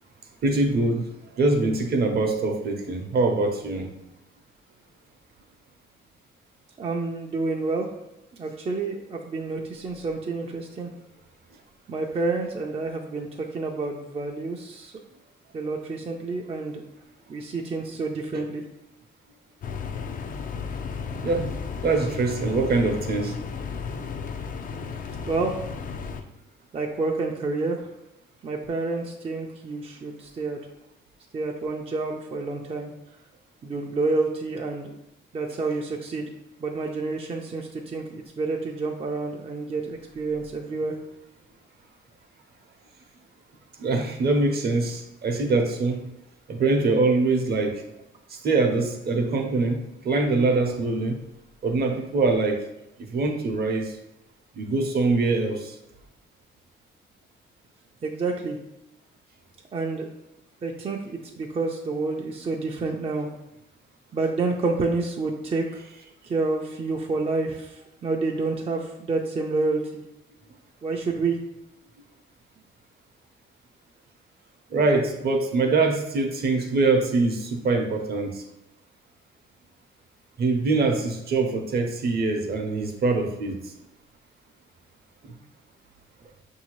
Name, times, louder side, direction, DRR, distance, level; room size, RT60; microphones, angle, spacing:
voice 1, 0.4-1.0 1.4-3.9 21.2-21.5 21.8-23.3 43.8-46.0 46.5-47.8 48.4-51.2 51.6-52.6 53.1-53.9 54.6-55.7 74.7-78.4 80.4-83.6, right 3 dB, 55° right, 5 dB, 0.7 m, -23 dB
voice 2, 6.8-7.9 8.3-10.9 11.9-14.9 15.5-16.8 17.3-18.6 25.3-25.6 26.7-27.9 28.4-30.6 31.3-32.9 33.6-34.9 35.3-36.3 36.6-41.0 58.0-58.6 59.7-60.1 60.6-63.3 64.1-65.8 66.2-70.0 70.8-71.4, right 3 dB, 30° right, 1 dB, 0.5 m, -29 dB
sound 1, 19.6-26.2, left 5 dB, 45° left, 0.4 m, -34 dB
5.5 x 2.7 x 3.0 m, 0.90 s
cardioid pair, 90°, 20 cm